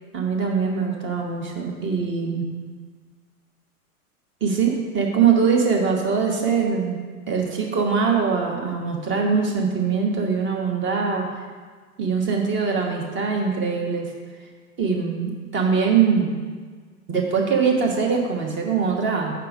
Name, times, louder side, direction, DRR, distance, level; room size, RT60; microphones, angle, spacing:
voice 1, 0.1-2.5 4.4-7.0 7.3-11.2 12.0-14.1 14.8-16.4 17.1-19.3, right 5 dB, 25° right, 1 dB, 1.2 m, -22 dB
5.9 x 3.7 x 6.1 m, 1.5 s
hypercardioid pair, 100°, 45 cm